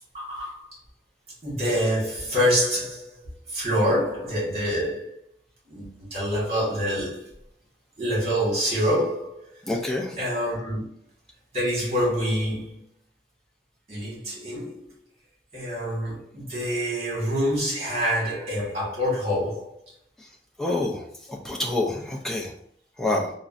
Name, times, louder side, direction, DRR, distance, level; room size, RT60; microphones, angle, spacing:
voice 1, 0.1-0.6 1.4-3.2 3.5-5.1 5.7-7.3 8.0-9.4 10.2-10.8 11.5-12.8 13.9-14.9 15.5-19.8, equal, 35° right, 1.5 m, -26 dB
voice 2, 9.7-10.1 20.6-21.0 21.4-22.5 23.0-23.3, left 2 dB, 5° left, 0.4 m, -26 dB
3.6 x 2.1 x 2.5 m
head